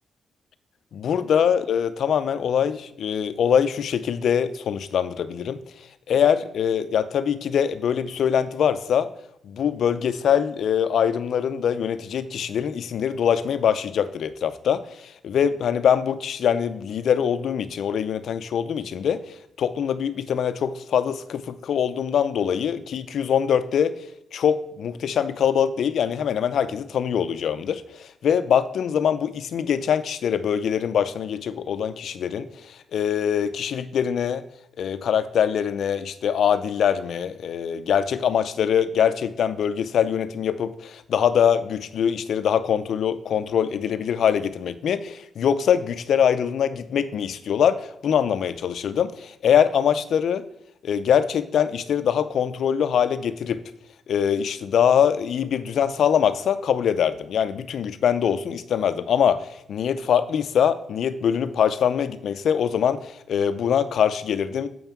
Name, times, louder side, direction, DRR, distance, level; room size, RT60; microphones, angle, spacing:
voice 1, 0.9-5.6 6.1-9.1 9.4-23.9 24.3-34.4 34.8-50.5 50.8-53.6 54.1-64.7, left 8 dB, 75° left, 13 dB, 0.6 m, -23 dB
7.8 x 5.6 x 5.9 m, 0.75 s
cardioid pair, 75°, 0 cm